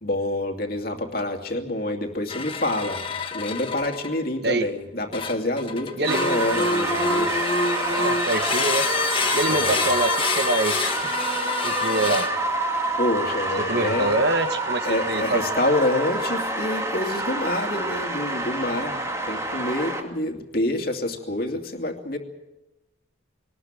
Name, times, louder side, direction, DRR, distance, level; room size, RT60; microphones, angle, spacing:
voice 1, 0.0-3.0 3.3-7.3 9.5-9.8 13.0-14.2 14.8-19.0 19.2-22.2, left 1 dB, 50° left, 4 dB, 2.6 m, -27 dB
sound 1, 2.3-4.2 5.1-12.6 13.3-13.7, left 3 dB, 25° left, 1.4 m, -27 dB
sound 2, 6.1-20.0, right 2 dB, 15° right, 2.3 m, -27 dB
voice 2, 7.8-8.8 9.3-10.9 11.6-12.3 13.7-15.4, right 2 dB, 55° right, 9 dB, 1.3 m, -25 dB
23.0 x 19.5 x 7.6 m, 0.97 s
head